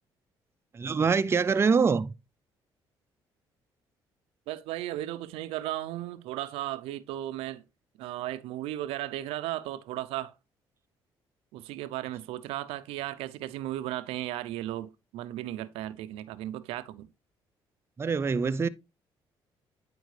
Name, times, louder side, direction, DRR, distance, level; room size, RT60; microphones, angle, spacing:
voice 1, 0.7-2.1 18.0-18.7, right 5 dB, 25° right, 0.4 m, -24 dB
voice 2, 4.5-7.6 8.0-10.3 11.5-17.1, right 14 dB, 90° right, 0.4 m, -35 dB
9.2 x 4.4 x 3.2 m
cardioid pair, 85°, 10 cm